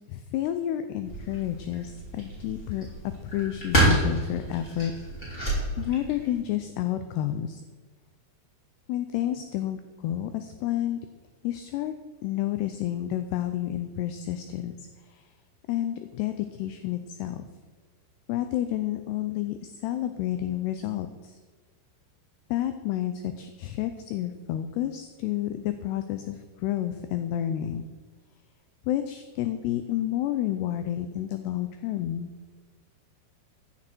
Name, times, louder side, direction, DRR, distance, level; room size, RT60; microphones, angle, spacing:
voice 1, 0.1-2.9 3.3-4.9 5.8-7.6 8.9-11.0 11.4-11.9 12.2-14.8 15.7-17.4 18.3-19.6 19.8-21.3 22.5-27.8 28.9-32.3, left 12 dB, 80° left, 9 dB, 2.4 m, -30 dB
sound 1, 1.0-6.4, right 1 dB, 10° left, 4.2 m, -29 dB
15.0 x 10.0 x 4.5 m, 1.4 s
omnidirectional pair, 5.3 m